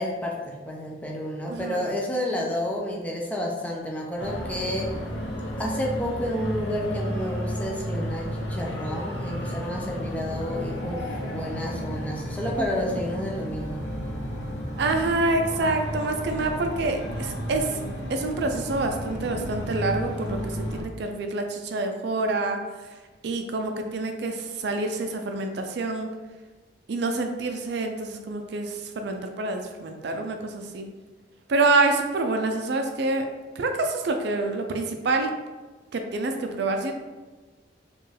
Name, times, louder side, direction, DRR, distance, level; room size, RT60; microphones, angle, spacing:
voice 1, 0.0-4.9 5.6-13.8, left 1 dB, 10° left, -1 dB, 0.5 m, -30 dB
voice 2, 1.5-1.9 12.6-13.0 14.8-17.8 18.1-22.6 23.2-26.1 26.9-30.9 31.5-33.2 33.6-35.3 35.9-36.9, right 3 dB, 60° right, 5 dB, 0.4 m, -27 dB
sound 1, 4.2-20.8, equal, 70° left, 0.8 m, -32 dB
4.3 x 2.4 x 3.3 m, 1.3 s
head